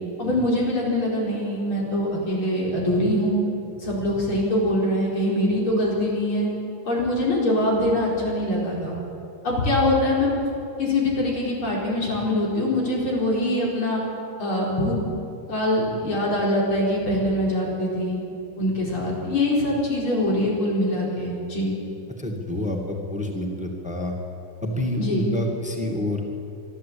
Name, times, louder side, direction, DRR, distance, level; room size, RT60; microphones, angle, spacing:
voice 1, 0.2-3.4 3.8-6.5 6.9-9.0 9.4-10.3 10.8-14.0 14.4-15.0 15.5-18.2 18.6-21.8 25.0-25.2, left 1 dB, 90° left, -3 dB, 5.3 m, -23 dB
voice 2, 22.2-24.1 24.6-26.3, left 1 dB, 5° right, 1 dB, 1.9 m, -27 dB
24.5 x 12.5 x 8.7 m, 2.7 s
omnidirectional pair, 2.2 m